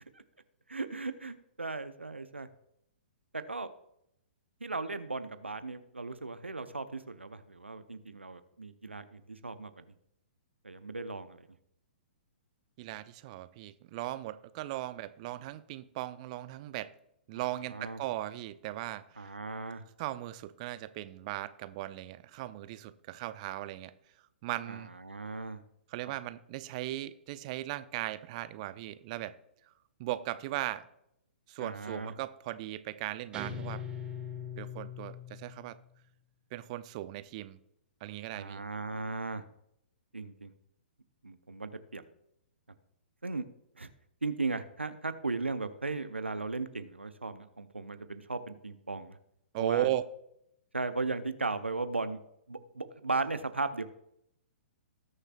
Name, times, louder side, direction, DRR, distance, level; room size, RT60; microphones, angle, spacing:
voice 1, 0.7-2.5 3.3-3.7 4.6-9.9 10.6-11.5 17.7-18.0 19.2-19.8 24.7-25.6 31.6-32.1 38.3-39.4 40.1-40.5 41.2-42.0 43.2-43.4 43.8-43.9 44.2-49.2 49.6-49.9 50.7-52.2 52.5-53.8, right 3 dB, 85° right, 11 dB, 0.7 m, -36 dB
voice 2, 12.8-16.9 17.3-19.3 19.7-23.9 24.4-24.9 25.9-29.4 30.0-30.9 31.5-33.8 34.6-35.8 36.5-37.6 38.0-38.6 49.5-50.0, right 15 dB, 35° right, 13 dB, 0.6 m, -37 dB
Guitar, 33.3-35.9, left 6 dB, 15° right, 1.4 m, -41 dB
19.0 x 6.6 x 2.4 m, 0.76 s
figure-of-eight pair, 120°, 6 cm